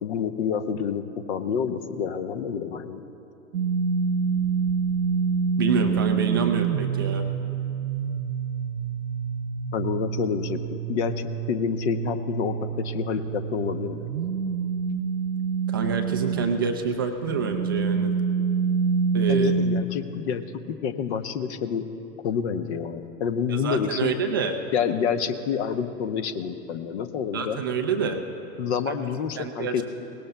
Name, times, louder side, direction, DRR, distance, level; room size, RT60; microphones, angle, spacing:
voice 1, 0.0-3.0 9.7-14.1 19.3-21.9 22.2-24.2 24.7-27.6 28.6-29.8, left 7 dB, 45° left, 11 dB, 0.9 m, -28 dB
sound 1, 3.5-16.6 17.2-19.8, right 6 dB, 80° right, 0.6 m, -27 dB
voice 2, 5.6-7.2 15.7-18.1 19.1-19.5 23.5-24.6 27.3-28.2 28.9-29.0 29.4-29.8, right 5 dB, 15° right, 4 dB, 0.3 m, -27 dB
22.0 x 18.5 x 2.2 m, 2.9 s
figure-of-eight pair, 105°, 48 cm